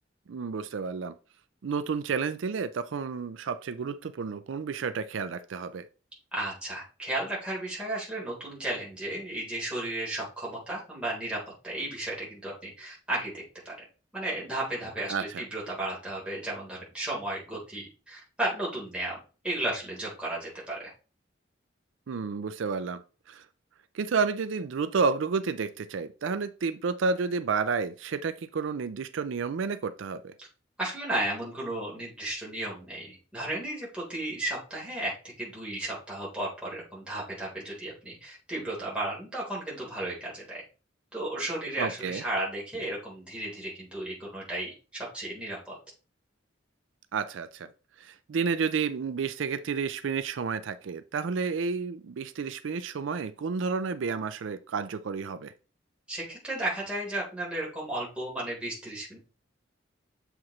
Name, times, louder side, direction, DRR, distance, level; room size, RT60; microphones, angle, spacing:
voice 1, 0.3-1.1 1.6-5.8 15.1-15.4 22.1-23.0 23.3-23.4 23.9-30.3 41.8-42.2 47.1-47.7 48.0-55.5, right 5 dB, 85° right, 12 dB, 0.4 m, -31 dB
voice 2, 6.3-13.7 14.1-19.1 19.4-20.9 30.8-40.6 41.1-45.8 56.1-59.2, right 1 dB, 5° right, -6 dB, 3.6 m, -34 dB
7.2 x 4.9 x 3.1 m, 0.35 s
head